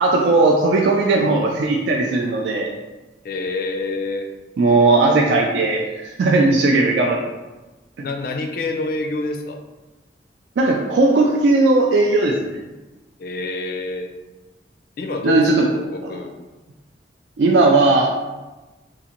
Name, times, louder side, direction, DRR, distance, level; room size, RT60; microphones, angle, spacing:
voice 1, 0.0-2.7 4.6-7.2 10.6-12.6 15.2-15.7 17.4-18.2, right 2 dB, 80° right, -1 dB, 0.3 m, -17 dB
voice 2, 3.2-4.3 5.1-5.2 8.0-9.6 13.2-14.1 15.0-16.3, left 2 dB, 55° left, 4 dB, 0.4 m, -27 dB
3.7 x 2.5 x 2.9 m, 1.1 s
head